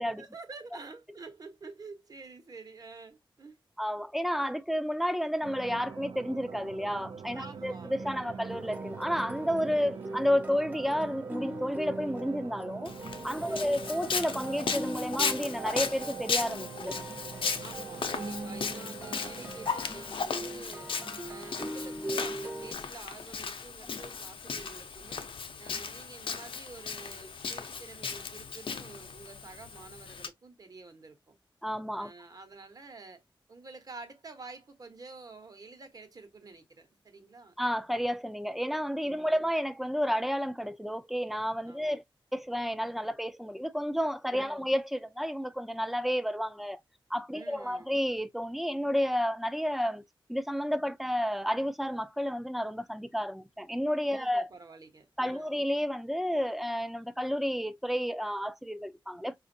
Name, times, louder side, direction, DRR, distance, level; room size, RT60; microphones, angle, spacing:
voice 1, 0.2-3.6 7.3-8.5 9.8-10.0 13.3-13.8 17.6-20.9 21.3-25.3 25.6-31.3 32.0-33.2 33.5-37.5 39.0-39.5 41.7-42.0 44.3-44.7 47.3-47.9 54.1-55.6, right 3 dB, 45° right, 0.9 m, -49 dB
voice 2, 3.8-12.9 13.2-17.0 23.9-24.0 31.6-32.1 37.6-42.0 42.3-46.8 47.1-50.0 50.3-54.5 55.2-59.3, equal, ahead, 0.3 m, -31 dB
sound 1, 5.4-19.7, right 5 dB, 75° right, 0.4 m, -44 dB
sound 2, 8.5-22.7, right 1 dB, 20° right, 0.7 m, -41 dB
Walk footsteps, 12.9-30.3, left 5 dB, 75° left, 0.6 m, -36 dB
5.0 x 2.4 x 2.6 m
wide cardioid pair, 145°, 9 cm